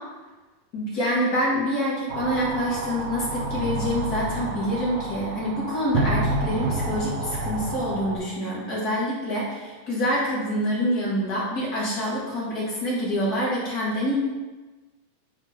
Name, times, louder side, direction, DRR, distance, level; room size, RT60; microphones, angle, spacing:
voice 1, 0.7-14.2, equal, 35° left, -6 dB, 2.1 m, -26 dB
sound 1, 2.1-8.2, right 2 dB, 90° right, 1.1 m, -29 dB
9.0 x 4.8 x 3.6 m, 1.2 s
omnidirectional pair, 3.4 m